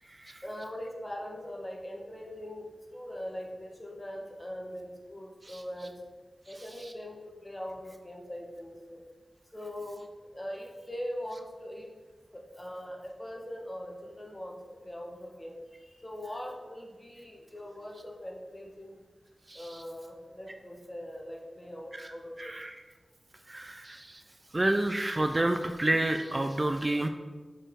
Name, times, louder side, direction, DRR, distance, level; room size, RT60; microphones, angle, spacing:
voice 1, 0.4-2.6 2.9-5.9 6.5-9.0 9.5-10.1 10.3-11.9 12.3-19.0 19.5-22.6, equal, 25° left, 0 dB, 1.4 m, -41 dB
voice 2, 19.5-19.8 21.9-22.0 22.4-22.7 23.5-24.2 24.5-27.1, right 1 dB, 35° right, 7 dB, 0.4 m, -29 dB
6.6 x 5.4 x 3.7 m, 1.3 s
wide cardioid pair, 55°, 0 cm